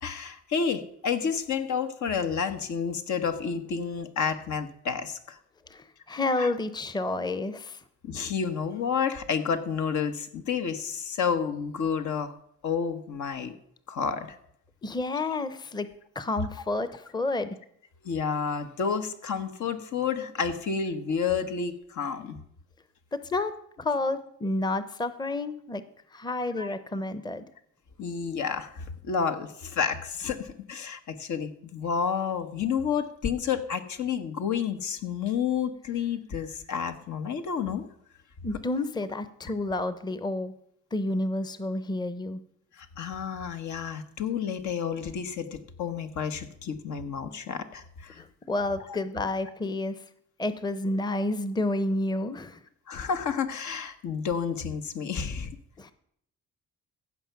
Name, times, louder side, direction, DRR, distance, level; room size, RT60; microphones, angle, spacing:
voice 1, 0.0-5.4 6.4-6.5 8.0-12.3 12.6-13.5 13.9-14.3 18.0-22.4 26.6-26.7 28.0-37.8 42.8-48.2 52.9-55.6, left 6 dB, 70° left, 7 dB, 1.3 m, -30 dB
voice 2, 5.7-7.8 14.8-15.9 16.1-17.6 23.1-23.5 23.8-25.8 26.1-27.4 38.4-40.5 40.9-42.4 48.2-50.0 50.4-52.6 55.8-55.9, left 2 dB, 15° left, 13 dB, 0.7 m, -30 dB
15.5 x 5.8 x 5.8 m, 0.68 s
cardioid pair, 90°, 30 cm